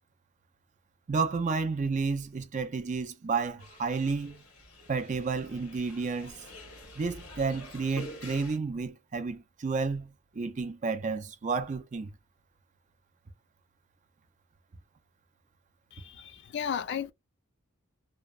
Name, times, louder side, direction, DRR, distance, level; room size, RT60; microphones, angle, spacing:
voice 1, 1.1-4.4 4.9-6.3 6.9-12.1, right 4 dB, 35° right, 0.4 m, -31 dB
sound 1, 3.6-8.6, left 1 dB, 85° left, 1.0 m, -47 dB
voice 2, 15.9-17.1, left 8 dB, 50° left, 0.4 m, -34 dB
2.8 x 2.0 x 2.3 m
head